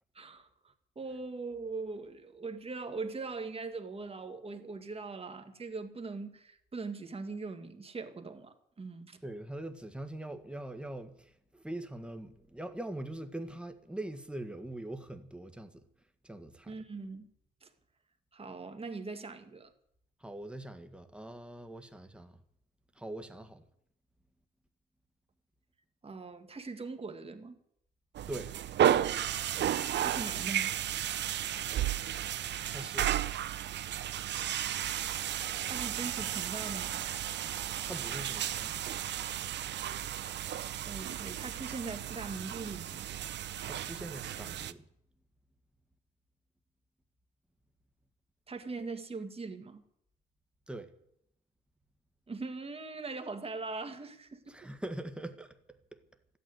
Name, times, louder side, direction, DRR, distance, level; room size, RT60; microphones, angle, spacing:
voice 1, 0.1-9.2 16.7-17.3 17.6-17.7 18.3-19.7 26.0-27.5 30.0-30.7 35.6-37.0 40.9-43.1 48.5-49.8 52.3-54.7, right 3 dB, 30° right, 2.0 m, -41 dB
voice 2, 9.2-15.8 16.2-16.7 20.2-22.4 22.9-23.6 28.3-28.5 32.7-33.1 37.8-38.9 43.6-44.8 50.7-50.9 54.5-56.0, right 1 dB, 5° right, 1.7 m, -42 dB
sound 1, 28.1-44.7, right 11 dB, 65° right, 0.7 m, -33 dB
13.0 x 9.5 x 9.8 m
cardioid pair, 90°, 20 cm